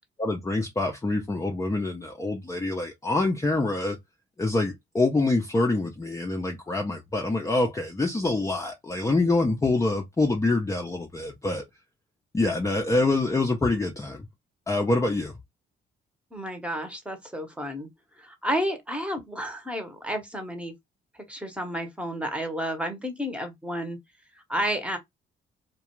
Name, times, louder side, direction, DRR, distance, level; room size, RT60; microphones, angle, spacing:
voice 1, 0.2-4.0 4.4-11.6 12.3-14.3 14.7-15.3, left 2 dB, 15° left, 0.5 m, -25 dB
voice 2, 16.3-17.9 18.2-20.7 21.3-24.0 24.5-25.0, equal, 5° right, 0.8 m, -31 dB
2.3 x 2.2 x 2.9 m
cardioid pair, 90°, 20 cm